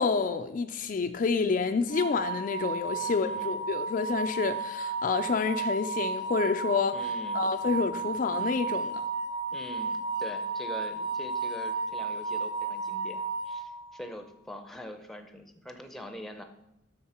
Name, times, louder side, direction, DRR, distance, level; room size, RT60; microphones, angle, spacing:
voice 1, 0.0-7.0 7.3-9.0, left 4 dB, 45° left, 7 dB, 0.3 m, -28 dB
sound 1, 1.9-14.1, right 4 dB, 25° right, 1.1 m, -33 dB
voice 2, 3.0-3.7 6.9-7.4 9.5-16.4, equal, ahead, 6 dB, 0.6 m, -43 dB
7.3 x 6.4 x 4.3 m, 0.85 s
head